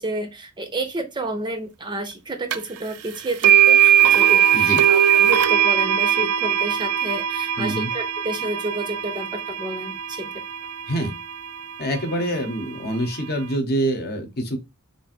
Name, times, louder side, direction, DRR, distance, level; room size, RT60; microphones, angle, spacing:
voice 1, 0.0-10.4, right 1 dB, 20° right, 0.6 m, -30 dB
sound 1, 2.5-2.6 3.4-11.5, right 10 dB, 80° right, 0.4 m, -19 dB
voice 2, 4.5-4.9 7.6-7.9 10.9-11.1 11.8-14.6, right 1 dB, 45° left, 0.9 m, -25 dB
3.4 x 2.5 x 4.2 m
head